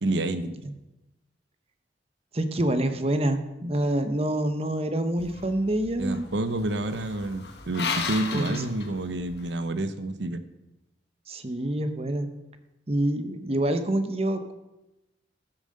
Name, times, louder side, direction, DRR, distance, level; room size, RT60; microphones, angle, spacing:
voice 1, 0.0-0.6 6.0-10.4, right 2 dB, 85° right, 11 dB, 0.8 m, -29 dB
voice 2, 2.3-6.2 8.3-8.6 11.3-12.3 12.9-14.5, right 1 dB, 35° right, 9 dB, 0.9 m, -26 dB
sound 1, 5.2-9.5, left 5 dB, 65° left, 1.4 m, -36 dB
13.0 x 7.5 x 6.5 m, 0.98 s
head